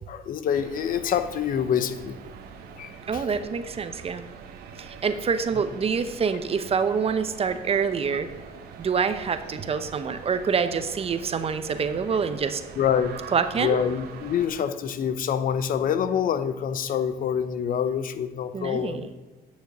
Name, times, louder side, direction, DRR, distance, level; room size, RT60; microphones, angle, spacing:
voice 1, 0.1-2.2 2.8-3.2 12.8-13.2 13.6-19.1, left 8 dB, 55° left, 12 dB, 0.7 m, -26 dB
sound 1, 0.5-14.5, right 6 dB, 70° right, 1.4 m, -43 dB
voice 2, 3.1-4.3 4.8-8.3 8.8-12.6 13.3-13.8 18.5-19.1, right 6 dB, 35° right, 10 dB, 0.8 m, -26 dB
9.6 x 6.5 x 6.1 m, 1.3 s
cardioid pair, 110°, 17 cm